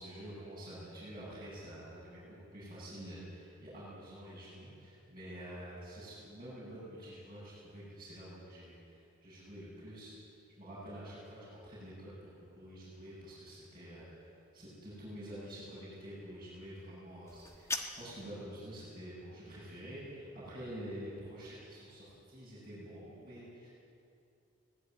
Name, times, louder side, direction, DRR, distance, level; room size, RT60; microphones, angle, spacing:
voice 1, 0.0-10.1 10.6-23.7, equal, 20° right, -11 dB, 7.9 m, -48 dB
sound 1, 17.3-18.3, left 2 dB, 15° left, 1.4 m, -40 dB
24.0 x 17.5 x 9.7 m, 2.6 s
head